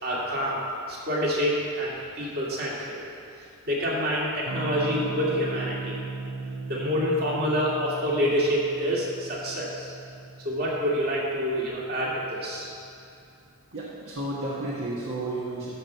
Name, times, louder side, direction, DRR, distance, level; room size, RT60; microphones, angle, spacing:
voice 1, 0.0-3.0 3.4-6.0 6.7-9.9 10.4-12.7, equal, 45° right, -5 dB, 2.2 m, -27 dB
Electric guitar / Strum, 4.5-12.8, right 4 dB, 85° right, 0.6 m, -37 dB
voice 2, 13.7-15.7, right 2 dB, 65° right, -7 dB, 1.4 m, -32 dB
13.0 x 4.5 x 6.7 m, 2.6 s
head